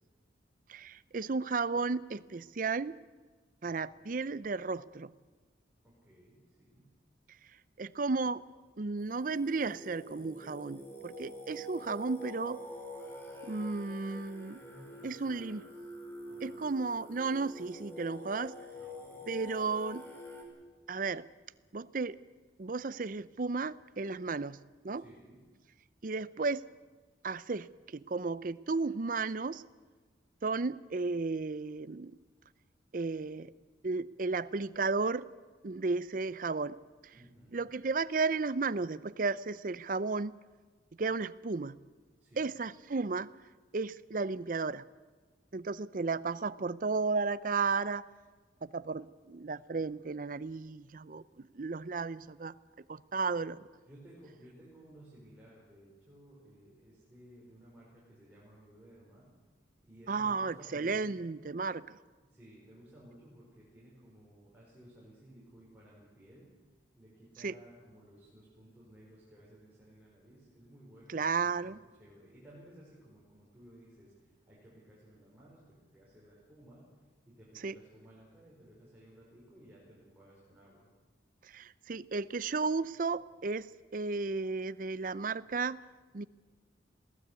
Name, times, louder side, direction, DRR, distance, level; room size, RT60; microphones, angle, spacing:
voice 1, 0.7-3.0 3.6-5.1 7.8-8.4 8.8-12.6 13.4-14.6 15.0-15.6 16.4-18.6 19.3-20.0 20.9-21.3 21.7-22.2 22.6-24.6 24.8-25.0 26.0-26.6 27.2-29.6 30.4-32.1 32.9-33.5 33.8-35.3 35.6-36.8 37.0-37.1 37.5-40.3 41.0-41.8 42.4-43.3 43.7-44.8 45.5-48.1 48.6-52.6 52.9-53.6 60.1-62.0 67.4-67.5 71.1-71.8 77.6-77.8 81.4-85.8 86.1-86.2, right 4 dB, 50° right, 16 dB, 0.6 m, -34 dB
voice 2, 5.8-6.9 14.6-15.9 16.3-16.7 18.7-19.3 24.9-25.4 37.1-37.7 42.2-42.5 53.3-53.6 53.9-59.3 59.8-61.2 62.2-66.5 67.0-76.9 77.3-80.9, right 1 dB, 10° right, -7 dB, 5.4 m, -57 dB
Singing, 9.0-20.4, left 1 dB, 15° left, 4.7 m, -46 dB
22.0 x 16.0 x 8.3 m, 1.4 s
head